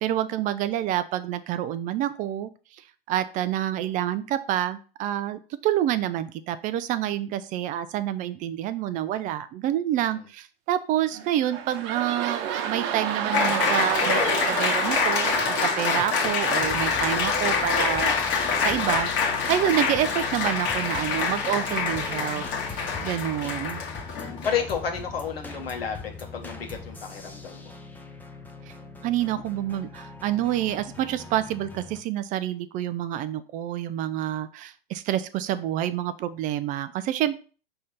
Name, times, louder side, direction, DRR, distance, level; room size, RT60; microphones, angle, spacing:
voice 1, 0.0-2.5 3.1-19.1 19.5-22.4 22.7-23.8 28.7-28.8 29.0-37.4, right 12 dB, 30° right, 13 dB, 0.4 m, -28 dB
sound 1, 11.1-17.6 18.2-18.3, right 8 dB, 50° right, 1.0 m, -31 dB
Applause, 13.3-24.7, left 5 dB, 40° left, 1.6 m, -26 dB
sound 2, 16.6-32.0, left 4 dB, 5° left, 0.7 m, -41 dB
voice 2, 24.4-27.7, left 7 dB, 85° left, 3 dB, 1.7 m, -31 dB
5.5 x 3.3 x 5.5 m, 0.38 s
hypercardioid pair, 110°, 29 cm